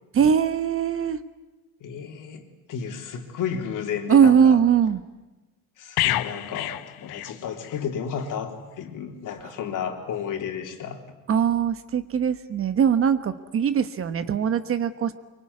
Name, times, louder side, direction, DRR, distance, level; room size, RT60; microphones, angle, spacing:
voice 1, 0.1-1.2 4.1-5.0 11.3-15.1, right 7 dB, 35° right, 11 dB, 1.1 m, -21 dB
voice 2, 1.8-4.6 5.8-11.0, left 7 dB, 55° left, 3 dB, 3.7 m, -32 dB
sound 1, 6.0-7.9 8.2-8.4, left 15 dB, 70° left, 1.1 m, -28 dB
24.5 x 24.0 x 9.7 m, 1.1 s
cardioid pair, 145°, 38 cm